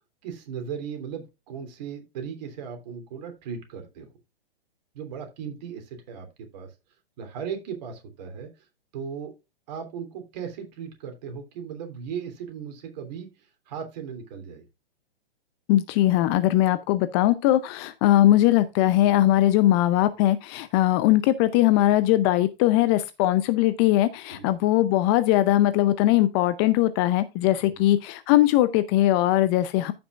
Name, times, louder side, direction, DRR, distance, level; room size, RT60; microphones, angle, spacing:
voice 1, 0.2-4.1 4.9-6.7 7.2-8.5 8.9-9.3 9.7-13.3 13.7-14.6 24.3-24.5 27.6-27.9, right 7 dB, 45° right, 3.2 m, -37 dB
voice 2, 15.7-29.9, left 14 dB, 25° left, 0.6 m, -20 dB
14.5 x 6.0 x 2.4 m
figure-of-eight pair, 115°, 30 cm